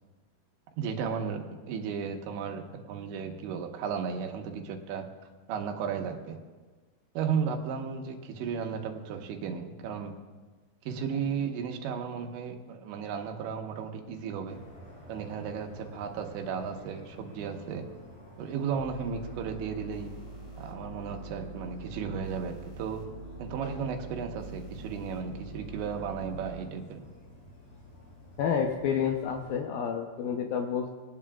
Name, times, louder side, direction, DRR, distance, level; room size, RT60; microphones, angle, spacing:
voice 1, 0.8-5.1 5.5-6.4 7.2-10.1 10.9-14.6 15.1-17.9 18.4-20.1 20.6-23.0 23.4-27.1, right 6 dB, 80° right, 3 dB, 3.5 m, -34 dB
sound 1, 14.5-29.6, left 1 dB, 55° left, 6.3 m, -51 dB
sound 2, 18.8-26.6, right 3 dB, 25° right, 4.1 m, -44 dB
voice 2, 28.4-30.9, left 7 dB, 85° left, 2 dB, 2.0 m, -29 dB
24.5 x 18.5 x 2.4 m, 1.4 s
omnidirectional pair, 5.3 m